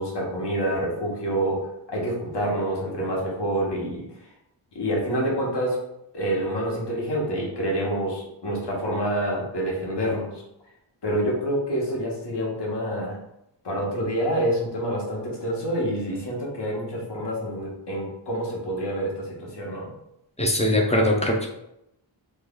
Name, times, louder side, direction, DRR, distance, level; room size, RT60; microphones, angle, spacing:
voice 1, 0.0-4.0 4.7-5.8 6.1-10.4 11.0-13.2 13.6-19.9, right 1 dB, 60° left, -3 dB, 1.1 m, -27 dB
voice 2, 20.4-21.5, left 1 dB, 15° left, 0 dB, 0.5 m, -21 dB
3.0 x 2.3 x 3.6 m, 0.83 s
wide cardioid pair, 110°, 47 cm